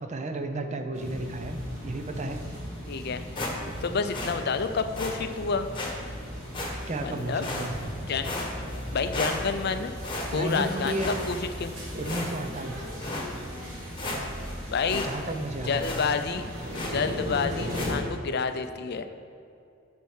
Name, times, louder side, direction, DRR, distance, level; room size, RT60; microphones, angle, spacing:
voice 1, 0.0-1.6 1.8-2.4 6.9-7.7 10.3-11.1 12.0-12.9 14.9-15.9, right 1 dB, 35° right, 6 dB, 0.6 m, -33 dB
sound 1, 0.9-18.0, equal, 85° right, 2.1 m, -37 dB
voice 2, 2.9-3.2 3.8-5.7 7.0-7.4 8.0-8.5 8.9-10.0 10.3-11.0 11.3-11.7 14.7-15.1 15.7-16.4 16.9-19.1, left 5 dB, 50° left, 9 dB, 0.5 m, -29 dB
sound 2, 3.4-3.9 4.1-4.4 5.0-5.1 5.7-5.9 6.5-7.0 7.4-7.9 8.2-8.8 9.1-9.7 10.0-10.6 11.0-11.7 12.0-12.6 13.0-13.3 13.7-13.8 14.0-14.5 14.9-15.1 15.4-15.5 15.8-16.1 16.7-17.1 17.7-18.0, left 2 dB, 25° left, 1.2 m, -34 dB
8.4 x 4.4 x 6.4 m, 2.6 s
head